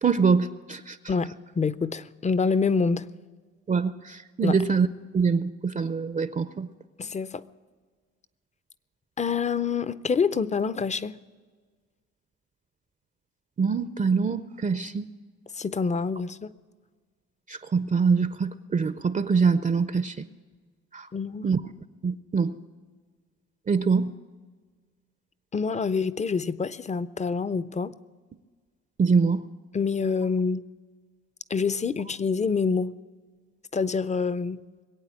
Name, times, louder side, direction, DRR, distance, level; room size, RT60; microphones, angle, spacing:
voice 1, 0.0-1.0 3.7-4.9 5.1-6.7 13.6-15.1 17.5-20.2 20.9-21.1 21.4-21.6 22.0-22.5 23.7-24.1 29.0-29.4, right 5 dB, 25° right, 13 dB, 0.5 m, -24 dB
voice 2, 1.1-3.1 4.4-4.6 7.0-7.4 9.2-11.2 15.5-16.5 21.1-21.5 25.5-27.9 29.7-30.6 31.5-32.9 33.7-34.6, left 5 dB, 25° left, 17 dB, 0.5 m, -26 dB
21.5 x 8.5 x 7.4 m, 1.5 s
cardioid pair, 90°, 30 cm